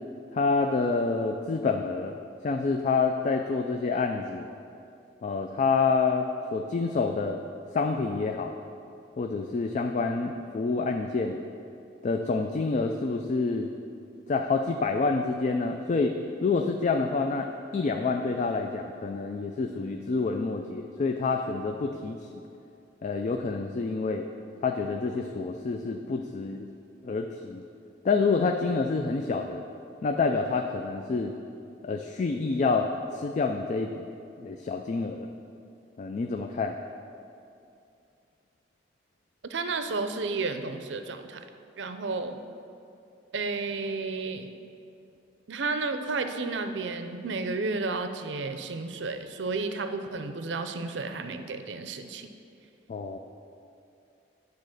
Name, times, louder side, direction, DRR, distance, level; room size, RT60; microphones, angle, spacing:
voice 1, 0.3-2.2 2.4-4.5 5.2-7.4 7.7-8.5 9.2-11.4 12.0-13.7 14.3-16.2 16.4-22.4 23.0-24.3 24.6-26.7 27.0-27.6 28.0-29.6 30.0-31.3 31.8-34.1 34.4-35.3 36.0-36.8 52.9-53.2, left 4 dB, 40° left, 4 dB, 0.3 m, -28 dB
voice 2, 39.5-41.4 41.8-42.4 43.3-44.5 45.5-52.3, right 3 dB, 75° right, 8 dB, 0.5 m, -32 dB
9.7 x 4.0 x 6.5 m, 2.6 s
head